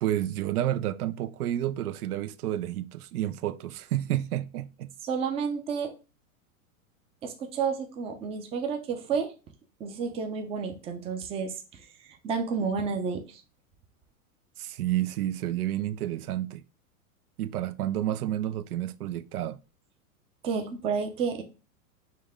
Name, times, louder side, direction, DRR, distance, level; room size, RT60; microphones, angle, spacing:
voice 1, 0.0-4.9 14.6-16.6 17.4-19.6, right 12 dB, 85° right, 0.5 m, -30 dB
voice 2, 5.0-5.9 7.2-9.3 9.8-11.8 12.2-13.4 20.4-21.4, right 5 dB, 15° right, 0.4 m, -30 dB
5.7 x 2.1 x 3.4 m
hypercardioid pair, 120°, 43 cm